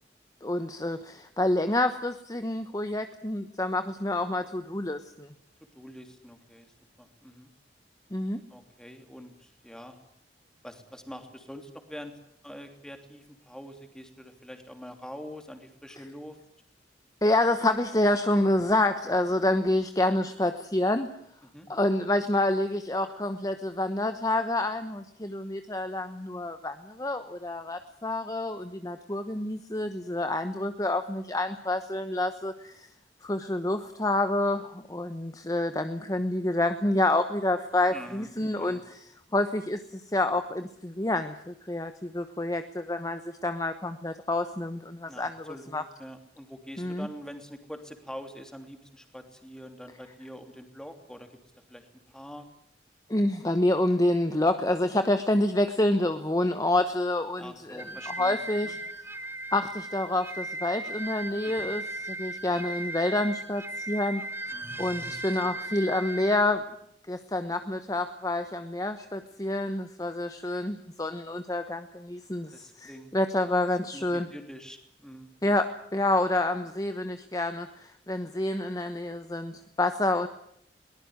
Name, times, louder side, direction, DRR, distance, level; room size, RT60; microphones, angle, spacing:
voice 1, 0.4-5.3 8.1-8.4 17.2-21.1 21.7-32.9 33.2-45.8 46.8-47.1 53.1-58.8 59.5-64.2 64.8-66.6 67.1-74.3 75.4-80.3, left 1 dB, 20° left, 9 dB, 1.0 m, -28 dB
voice 2, 5.7-7.5 8.5-10.0 10.6-12.1 12.4-16.4 21.4-21.7 37.9-38.8 45.1-51.4 51.7-52.4 57.4-58.4 58.6-58.8 61.4-61.7 64.5-64.8 65.1-65.5 72.5-73.1 73.9-75.3, equal, 5° left, 5 dB, 3.0 m, -45 dB
sound 1, 57.8-66.4, right 2 dB, 15° right, 1.0 m, -37 dB
22.5 x 19.5 x 9.6 m, 0.72 s
head